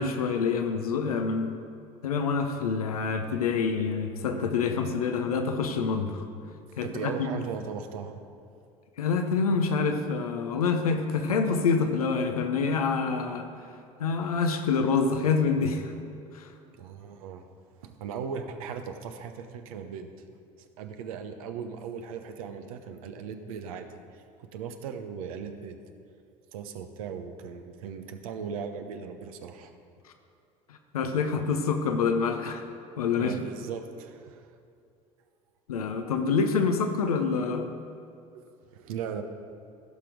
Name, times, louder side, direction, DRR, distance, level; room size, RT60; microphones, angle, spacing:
voice 1, 0.0-1.5 2.0-6.2 6.8-7.4 9.0-13.5 14.0-15.9 16.3-16.5 30.7-32.6 33.0-33.3 35.7-37.7, left 5 dB, 85° left, 6 dB, 0.8 m, -27 dB
voice 2, 6.8-8.2 16.8-17.4 17.8-20.1 20.6-25.8 26.5-29.7 33.2-34.5 38.3-38.4 38.7-39.2, right 6 dB, 75° right, 6 dB, 0.9 m, -38 dB
15.5 x 6.0 x 5.1 m, 2.5 s
hypercardioid pair, 70°, 18 cm